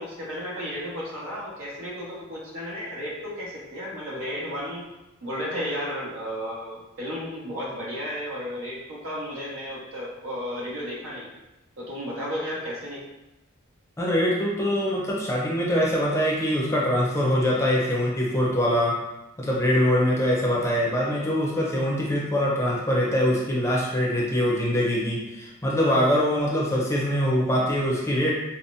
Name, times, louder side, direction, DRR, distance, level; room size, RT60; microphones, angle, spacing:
voice 1, 0.0-4.8 5.2-11.3 11.8-13.0, equal, 85° right, -6 dB, 1.3 m, -33 dB
voice 2, 14.0-19.0 19.4-28.3, equal, 15° left, -4 dB, 0.6 m, -23 dB
5.5 x 2.1 x 2.6 m, 0.95 s
head